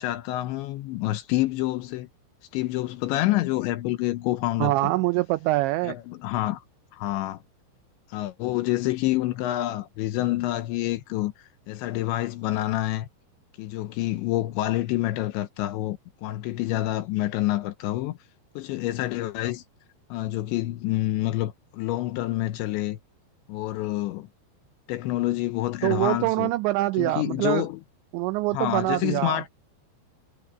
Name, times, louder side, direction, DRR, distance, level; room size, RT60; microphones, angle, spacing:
voice 1, 0.0-2.1 2.5-4.7 5.8-6.6 6.9-7.4 8.1-13.1 13.6-18.2 18.6-19.6 20.1-23.0 23.5-24.3 24.9-26.5 27.0-27.8 28.5-29.5, left 16 dB, 80° left, 2.8 m, -27 dB
voice 2, 4.6-6.0 25.8-27.7 28.1-29.4, right 19 dB, 85° right, 2.5 m, -24 dB
omnidirectional pair, 5.8 m